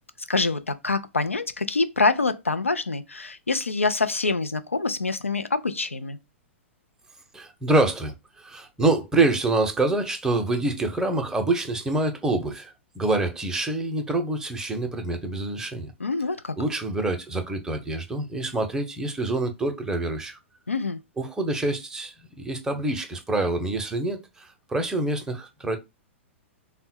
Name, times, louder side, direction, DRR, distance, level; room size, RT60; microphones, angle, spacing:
voice 1, 0.3-6.2 16.0-16.5 20.7-21.0, left 3 dB, 80° left, 0.5 m, -25 dB
voice 2, 7.3-15.9 16.6-20.4 21.2-22.1 22.4-25.8, right 2 dB, 10° right, 0.7 m, -26 dB
3.6 x 2.2 x 4.3 m
figure-of-eight pair, 105°, 7 cm